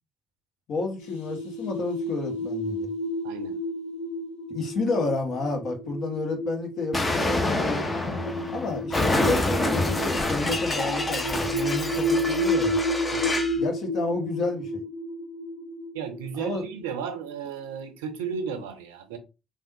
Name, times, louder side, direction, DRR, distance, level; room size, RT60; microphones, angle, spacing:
voice 1, 0.7-2.9 4.5-7.9 8.5-12.8 13.6-14.8 16.3-16.6, left 3 dB, 60° left, 0.9 m, -30 dB
sound 1, 1.0-17.3, equal, 90° left, 0.6 m, -31 dB
voice 2, 3.2-3.6 13.1-13.4 15.9-19.2, right 6 dB, 80° right, 0.4 m, -34 dB
Explosion, 6.9-13.6, left 2 dB, 30° left, 0.7 m, -27 dB
3.4 x 2.1 x 2.7 m
hypercardioid pair, 45°, 0 cm